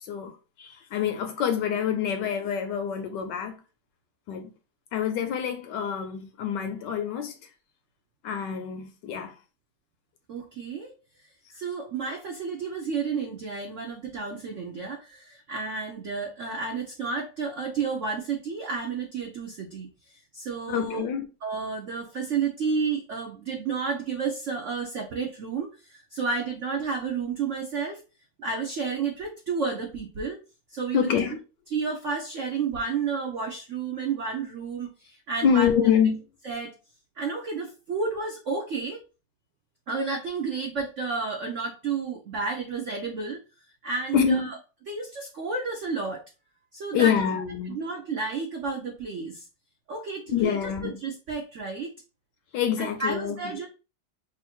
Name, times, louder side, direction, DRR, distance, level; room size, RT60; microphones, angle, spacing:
voice 1, 0.0-3.6 4.3-4.5 4.9-7.3 8.2-9.3 20.7-21.3 30.9-31.4 35.4-36.2 44.1-44.5 46.9-47.8 50.3-51.0 52.5-53.4, left 7 dB, 75° left, 1.1 m, -26 dB
voice 2, 10.3-10.9 11.5-19.9 20.3-21.0 21.4-28.0 28.4-30.4 30.7-31.1 31.7-35.7 36.4-36.7 37.2-39.0 39.9-43.4 43.8-44.5 44.9-46.2 46.7-47.2 47.7-49.5 49.9-51.9 52.8-53.7, right 4 dB, 90° right, 0.6 m, -31 dB
3.2 x 2.5 x 4.2 m
omnidirectional pair, 2.2 m